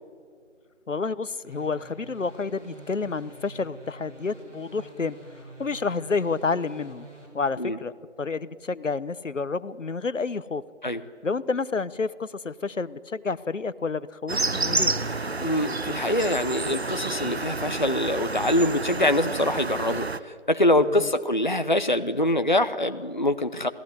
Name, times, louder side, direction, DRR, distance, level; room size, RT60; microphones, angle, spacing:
voice 1, 0.9-5.2 5.6-7.0 7.3-10.6 11.2-15.0 20.8-21.1, left 4 dB, 80° left, 17 dB, 1.0 m, -29 dB
sound 1, 1.4-7.3, right 1 dB, 80° right, 7.5 m, -47 dB
sound 2, 14.3-20.2, right 3 dB, 60° right, 0.9 m, -29 dB
voice 2, 15.4-23.7, left 1 dB, 40° left, 9 dB, 0.7 m, -24 dB
28.0 x 18.5 x 9.5 m, 2.1 s
figure-of-eight pair, 180°, 37 cm